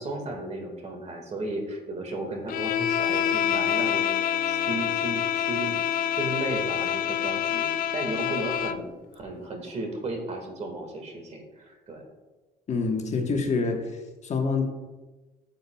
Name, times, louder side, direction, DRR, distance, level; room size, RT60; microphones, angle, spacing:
voice 1, 0.0-5.8 6.2-8.9 9.1-12.1, right 2 dB, 40° right, 3 dB, 1.7 m, -34 dB
Bowed string instrument, 2.5-8.9, left 10 dB, 60° left, 0.4 m, -27 dB
Bowed string instrument 2, 3.5-10.5, left 1 dB, 25° left, 1.7 m, -48 dB
voice 2, 12.7-14.6, left 4 dB, 40° left, 3 dB, 1.2 m, -27 dB
11.5 x 7.0 x 2.3 m, 1.2 s
cardioid pair, 110°, 17 cm